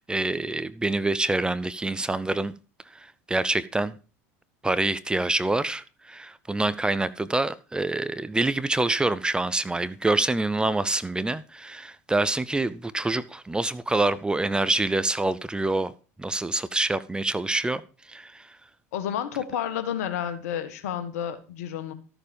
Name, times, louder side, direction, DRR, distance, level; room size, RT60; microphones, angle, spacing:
voice 1, 0.0-2.5 2.9-3.9 4.6-15.9 16.2-17.8 18.1-18.5, right 2 dB, 10° right, 0.7 m, -26 dB
voice 2, 18.9-21.9, left 9 dB, 75° left, 1.5 m, -30 dB
13.0 x 6.9 x 5.3 m
hypercardioid pair, 85°, 8 cm